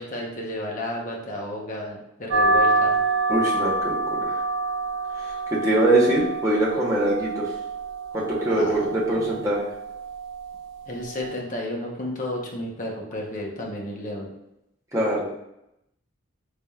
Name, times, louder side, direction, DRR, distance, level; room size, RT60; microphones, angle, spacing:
voice 1, 0.0-3.0 8.5-9.4 10.9-14.3, left 1 dB, 40° left, -1 dB, 0.8 m, -32 dB
sound 1, 2.3-11.4, right 2 dB, 70° right, 0.6 m, -27 dB
voice 2, 3.3-4.4 5.2-7.5 8.1-9.7 14.9-15.3, right 1 dB, 15° right, -5 dB, 0.8 m, -23 dB
4.0 x 3.3 x 2.3 m, 0.84 s
head